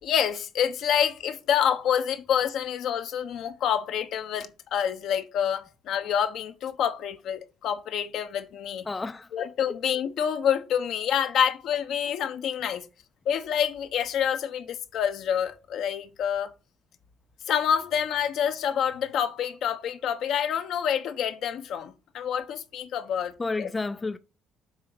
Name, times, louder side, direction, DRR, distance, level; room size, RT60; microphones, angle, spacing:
voice 1, 0.0-8.9 9.3-12.8 13.2-16.5 17.5-23.3 23.6-23.7, left 8 dB, 65° left, 1.0 m, -27 dB
voice 2, 8.8-9.8 23.4-24.2, left 3 dB, 25° left, 0.5 m, -32 dB
6.5 x 3.9 x 6.1 m
cardioid pair, 90°, 0 cm